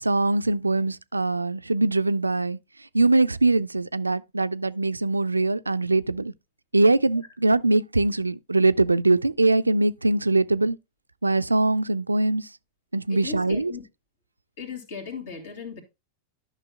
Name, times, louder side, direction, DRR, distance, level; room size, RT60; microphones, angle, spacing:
voice 1, 0.0-2.6 2.9-6.3 6.7-10.8 11.2-12.5 12.9-13.7, right 2 dB, 80° right, 0.3 m, -22 dB
voice 2, 13.1-13.8 14.6-15.8, left 6 dB, 55° left, 2.6 m, -37 dB
12.0 x 5.9 x 2.3 m
figure-of-eight pair, 90°, 0 cm